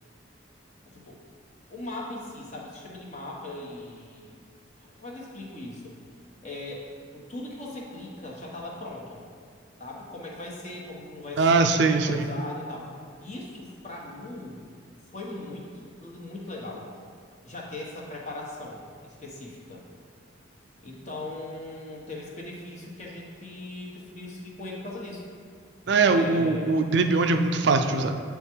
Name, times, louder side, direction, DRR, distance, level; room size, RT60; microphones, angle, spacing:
voice 1, 0.9-1.2 1.7-4.4 4.7-5.9 6.4-6.9 7.1-9.2 9.8-12.9 13.2-14.6 15.1-16.9 17.4-19.9 20.8-25.2 26.0-26.9, left 2 dB, 35° left, -3 dB, 1.1 m, -39 dB
voice 2, 11.4-12.3 25.9-28.2, right 3 dB, 60° right, 6 dB, 0.4 m, -22 dB
8.8 x 3.6 x 4.5 m, 2.2 s
head